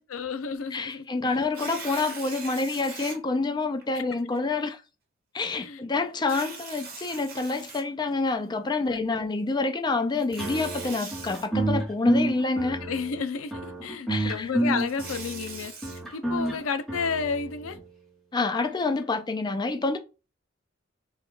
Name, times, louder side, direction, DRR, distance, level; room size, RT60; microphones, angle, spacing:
voice 1, 0.0-1.4 5.6-5.8 8.9-9.3 12.8-15.7 16.1-17.8, left 5 dB, 85° left, 0.5 m, -32 dB
voice 2, 0.7-4.8 5.3-12.8 14.1-14.5 18.3-20.0, left 3 dB, 20° left, 0.4 m, -27 dB
Tearing, 1.4-3.2 3.8-3.9 6.2-8.3 10.2-11.5 14.6-16.0, right 4 dB, 50° right, 1.0 m, -40 dB
sound 1, 10.4-17.8, right 1 dB, ahead, 1.0 m, -29 dB
2.9 x 2.3 x 3.6 m
head